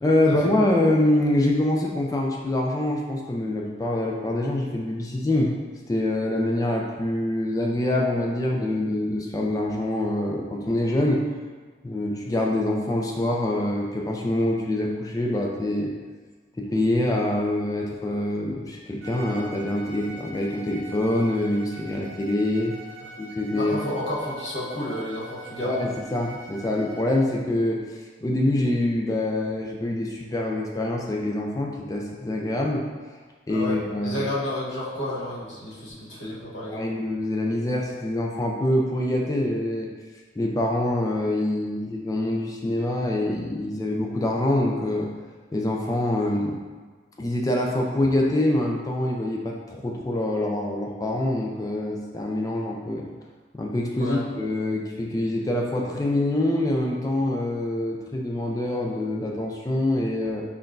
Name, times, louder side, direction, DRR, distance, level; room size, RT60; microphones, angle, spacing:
voice 1, 0.0-5.6 5.9-11.2 11.8-15.9 16.6-22.7 23.2-23.7 25.6-32.8 33.5-34.3 36.7-39.9 40.4-45.1 45.5-46.6 47.2-53.1 53.5-60.4, left 1 dB, 20° left, -1 dB, 0.3 m, -25 dB
Bowed string instrument, 19.0-27.3, right 1 dB, 85° right, 0.6 m, -43 dB
voice 2, 23.6-25.9 33.5-36.8 54.0-54.2, left 1 dB, 85° left, -6 dB, 1.1 m, -31 dB
5.7 x 2.2 x 2.5 m, 1.4 s
head